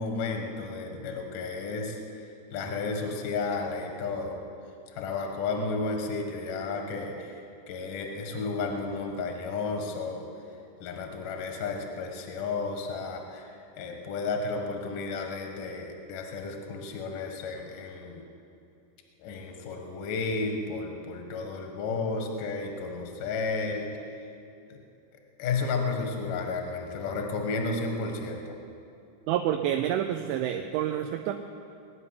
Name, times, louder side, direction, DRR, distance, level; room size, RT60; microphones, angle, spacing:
voice 1, 0.0-4.4 4.9-7.4 7.7-10.3 10.8-13.5 13.8-18.2 19.2-23.9 24.7-24.8 25.4-28.6, left 4 dB, 60° left, 3 dB, 2.6 m, -32 dB
voice 2, 29.3-31.3, right 11 dB, 80° right, 5 dB, 3.0 m, -28 dB
20.0 x 7.0 x 9.9 m, 2.6 s
omnidirectional pair, 5.5 m